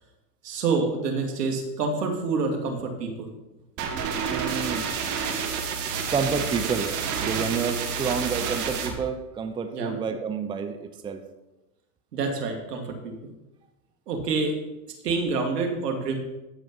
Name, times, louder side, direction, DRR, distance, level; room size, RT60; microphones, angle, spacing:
voice 1, 0.4-3.3 9.7-9.9 12.1-13.1 14.1-14.5 15.0-16.2, right 4 dB, 75° right, 3 dB, 2.7 m, -27 dB
sound 1, 3.8-8.9, right 6 dB, 40° right, 2.2 m, -29 dB
voice 2, 4.3-4.9 6.1-6.9 7.2-11.2, right 5 dB, 10° right, 7 dB, 0.6 m, -29 dB
14.5 x 5.2 x 5.5 m, 0.98 s
hypercardioid pair, 110°, 48 cm